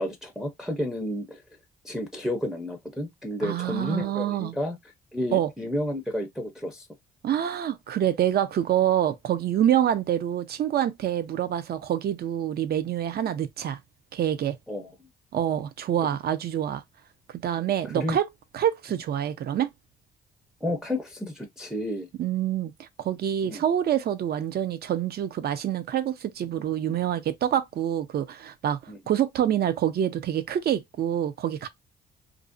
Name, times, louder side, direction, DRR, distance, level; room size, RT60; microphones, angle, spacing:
voice 1, 0.0-1.4 1.8-4.8 5.1-6.8 14.7-14.9 17.8-18.2 20.6-22.1 23.4-23.6 28.9-29.0, left 1 dB, ahead, 0.5 m, -31 dB
voice 2, 3.4-4.5 5.3-5.5 7.2-13.8 14.1-14.6 15.3-16.8 17.4-18.3 18.5-19.7 22.2-28.8 29.1-31.7, right 10 dB, 55° right, 0.5 m, -26 dB
2.4 x 2.0 x 2.5 m
cardioid pair, 90°, 20 cm